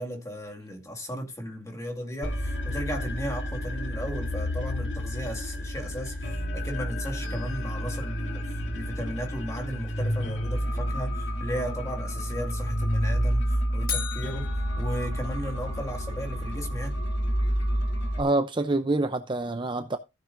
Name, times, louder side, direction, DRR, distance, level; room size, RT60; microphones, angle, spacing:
voice 1, 0.0-14.5 14.8-17.0, equal, 15° left, 2.0 m, -35 dB
sound 1, 2.2-18.2, equal, 75° left, 2.9 m, -30 dB
sound 2, 13.9-16.0, left 8 dB, 50° left, 1.6 m, -37 dB
voice 2, 18.2-20.0, right 2 dB, 25° right, 0.6 m, -26 dB
15.0 x 7.3 x 2.6 m
head